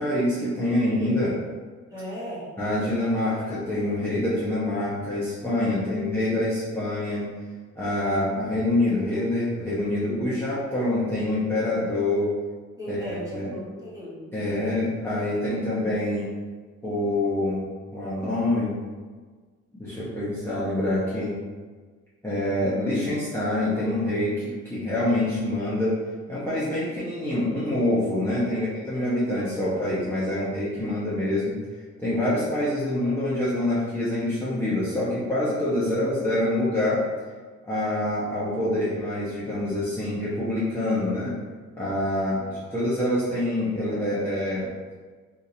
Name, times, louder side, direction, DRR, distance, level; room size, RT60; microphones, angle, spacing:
voice 1, 0.0-1.4 2.6-7.3 7.7-12.3 12.9-13.5 14.3-16.3 16.8-17.6 17.9-18.8 19.7-21.4 22.2-26.0 26.3-31.6 32.0-37.0 37.6-41.3 41.8-44.7, left 1 dB, 10° left, -11 dB, 0.9 m, -26 dB
voice 2, 1.9-2.5 5.7-6.2 12.8-14.8 28.3-29.1 42.1-42.4, left 1 dB, 10° right, -7 dB, 1.3 m, -38 dB
3.7 x 2.7 x 2.7 m, 1.4 s
cardioid pair, 90°, 30 cm